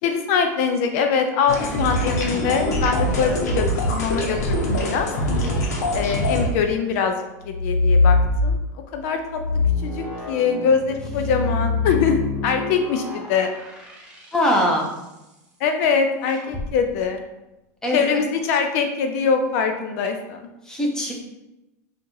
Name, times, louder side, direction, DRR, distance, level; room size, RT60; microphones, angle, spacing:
voice 1, 0.0-5.1 5.9-7.2 7.5-8.2 8.4-8.6 8.9-9.4 9.8-13.5 15.6-17.2 17.9-20.5, left 6 dB, 60° left, 5 dB, 0.5 m, -23 dB
sound 1, 1.5-6.5, equal, 85° left, 0.9 m, -23 dB
sound 2, 7.4-8.8 9.3-14.8 16.3-16.7, left 3 dB, 10° right, 1.2 m, -23 dB
voice 2, 14.3-14.8 17.8-18.2 20.6-21.1, equal, 5° left, -2 dB, 0.9 m, -21 dB
3.8 x 2.5 x 4.6 m, 0.96 s
supercardioid pair, 130°, 9 cm